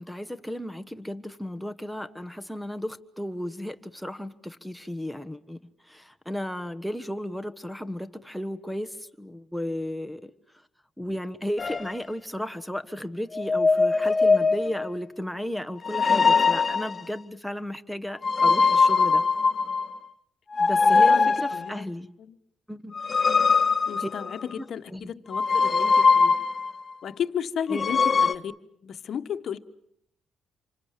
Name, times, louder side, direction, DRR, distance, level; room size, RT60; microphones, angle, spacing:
voice 1, 0.0-5.6 5.9-10.3 11.0-19.2 20.6-22.1 22.7-23.0 24.0-24.1 24.9-25.1 27.7-27.8, left 1 dB, ahead, 8 dB, 1.3 m, -34 dB
sound 1, 11.6-11.9 13.3-14.9 15.8-17.0 18.2-20.0 20.5-21.7 22.9-24.5 25.3-26.7 27.7-28.3, left 4 dB, 35° left, 1.0 m, -21 dB
voice 2, 20.8-21.9 22.2-22.4 23.9-26.4 27.0-28.5 28.8-29.6, left 8 dB, 60° left, 11 dB, 1.3 m, -34 dB
28.0 x 25.5 x 7.5 m, 0.75 s
cardioid pair, 90°, 0 cm